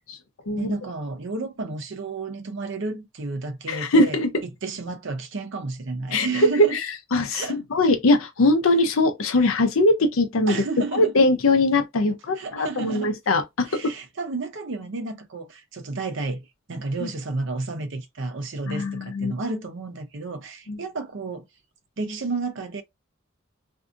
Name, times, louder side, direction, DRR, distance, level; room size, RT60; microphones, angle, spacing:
voice 1, 0.6-6.8 7.3-7.6 9.4-9.5 10.5-11.1 12.4-13.2 13.6-21.5 22.0-22.8, right 3 dB, 65° right, 0.6 m, -32 dB
voice 2, 3.7-4.3 6.1-6.8 7.1-10.6 10.9-13.9 17.0-17.1 18.7-19.3 20.7-20.8, left 2 dB, 90° left, 0.6 m, -21 dB
2.6 x 2.4 x 2.5 m
head